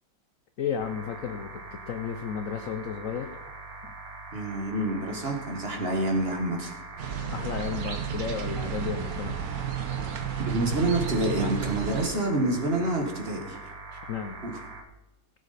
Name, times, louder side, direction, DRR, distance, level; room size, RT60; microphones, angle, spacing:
voice 1, 0.6-3.4 3.8-3.9 7.3-9.4 13.9-14.4, left 7 dB, 65° left, 8 dB, 0.8 m, -33 dB
sound 1, 0.8-14.8, right 3 dB, 75° right, 2.2 m, -43 dB
voice 2, 4.3-6.8 10.4-13.6 14.4-14.5, right 1 dB, 35° right, 3 dB, 1.6 m, -27 dB
sound 2, 7.0-12.1, right 8 dB, 55° right, 1.4 m, -32 dB
16.0 x 8.1 x 4.1 m, 1.0 s
omnidirectional pair, 2.1 m